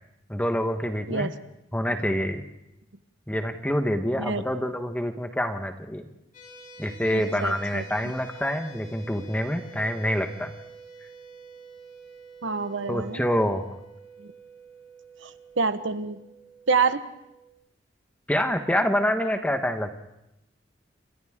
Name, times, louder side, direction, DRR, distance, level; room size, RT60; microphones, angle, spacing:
voice 1, 0.3-1.3 1.7-2.4 3.3-6.0 6.8-10.5 12.9-13.6 18.3-19.9, equal, 5° left, 6 dB, 1.1 m, -26 dB
sound 1, 6.3-17.5, right 3 dB, 40° left, 5.9 m, -48 dB
voice 2, 7.1-8.1 12.4-13.2 14.2-14.3 15.2-16.2 16.7-17.0, right 4 dB, 85° right, 11 dB, 1.2 m, -27 dB
29.0 x 26.0 x 3.7 m, 0.85 s
head